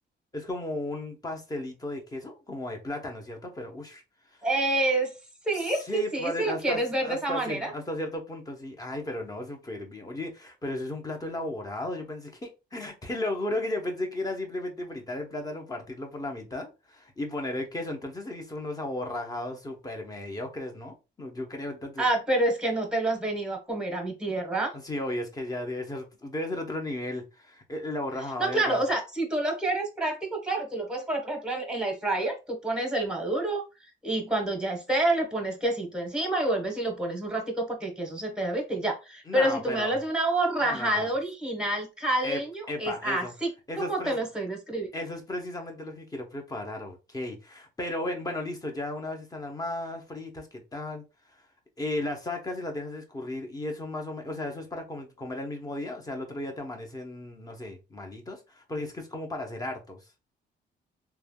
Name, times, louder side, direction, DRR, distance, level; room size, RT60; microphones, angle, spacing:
voice 1, 0.3-4.0 5.6-22.0 24.8-28.8 39.3-40.0 40.6-41.1 42.2-42.4 42.7-43.3 43.7-44.2 44.9-51.0 51.8-60.0, left 1 dB, 20° left, 0.8 m, -35 dB
voice 2, 4.4-5.1 5.4-7.7 22.0-24.7 28.4-33.6 34.0-43.5 43.8-44.9, right 2 dB, 5° right, 1.0 m, -28 dB
3.2 x 2.2 x 2.3 m
cardioid pair, 90°, 20 cm